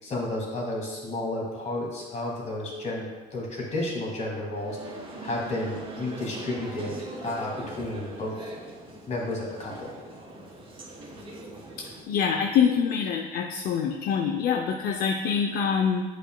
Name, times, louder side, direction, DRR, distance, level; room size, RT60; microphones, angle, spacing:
voice 1, 0.0-4.9 5.2-8.3 9.1-10.0, left 2 dB, 40° left, -2 dB, 1.9 m, -32 dB
sound 1, 4.5-12.0, right 2 dB, 30° right, 1.6 m, -41 dB
voice 2, 12.1-16.0, left 7 dB, 65° left, 4 dB, 0.5 m, -25 dB
8.9 x 5.0 x 2.2 m, 1.3 s
cardioid pair, 110°, 17 cm